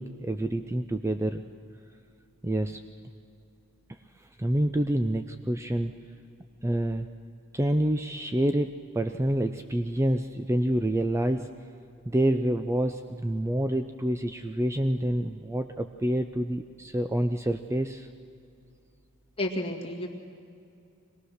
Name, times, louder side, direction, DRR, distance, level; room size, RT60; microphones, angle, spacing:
voice 1, 0.0-1.4 2.4-2.8 4.2-6.0 6.6-7.1 7.5-11.5 12.1-18.1, right 1 dB, 15° right, 8 dB, 0.4 m, -27 dB
voice 2, 19.4-20.1, left 1 dB, 25° left, -1 dB, 2.2 m, -31 dB
23.5 x 18.5 x 6.5 m, 2.5 s
head